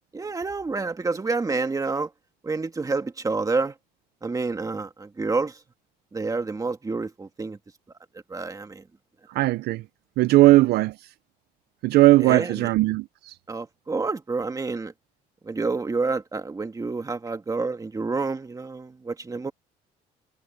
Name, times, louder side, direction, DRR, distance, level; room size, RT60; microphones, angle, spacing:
voice 1, 0.1-2.1 2.4-3.7 4.2-5.6 6.1-7.6 8.3-8.8 12.2-12.7 13.5-14.9 15.4-19.5, right 3 dB, 20° right, 2.1 m, -28 dB
voice 2, 9.3-9.8 10.2-10.9 11.8-13.3, right 18 dB, 70° right, 0.5 m, -18 dB
cardioid pair, 110°, 17 cm